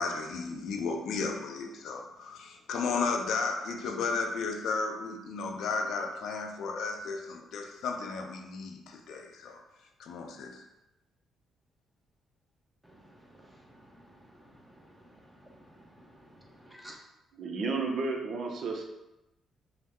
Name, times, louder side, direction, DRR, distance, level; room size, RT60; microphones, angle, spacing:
voice 1, 0.0-9.6 10.0-10.6, left 4 dB, 75° left, 4 dB, 0.5 m, -34 dB
voice 2, 12.8-17.0, equal, 5° right, -1 dB, 0.9 m, -55 dB
voice 3, 17.3-18.9, right 3 dB, 60° right, 1 dB, 0.7 m, -32 dB
5.3 x 2.2 x 3.6 m, 0.94 s
cardioid pair, 90°, 0 cm